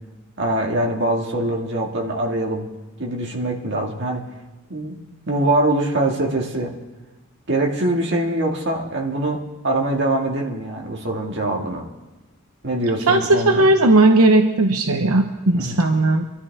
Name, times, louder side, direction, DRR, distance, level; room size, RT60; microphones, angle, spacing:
voice 1, 0.4-2.7 3.0-4.3 4.7-5.0 5.3-6.8 7.5-11.8 12.6-13.7 15.5-15.8, right 1 dB, 50° right, 0 dB, 2.2 m, -23 dB
voice 2, 13.1-16.2, right 2 dB, 85° right, 5 dB, 0.9 m, -16 dB
25.0 x 12.5 x 3.6 m, 1.1 s
head